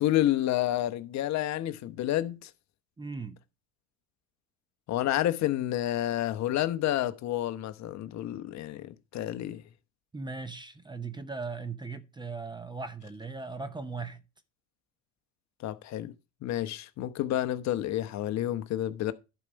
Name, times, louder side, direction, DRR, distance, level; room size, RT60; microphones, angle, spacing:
voice 1, 0.0-2.5 4.9-9.6 15.6-16.1 16.4-19.1, left 13 dB, 45° left, 0.9 m, -29 dB
voice 2, 3.0-3.4 10.1-14.2, right 4 dB, 10° right, 0.7 m, -38 dB
11.0 x 4.7 x 5.2 m
supercardioid pair, 110°, 39 cm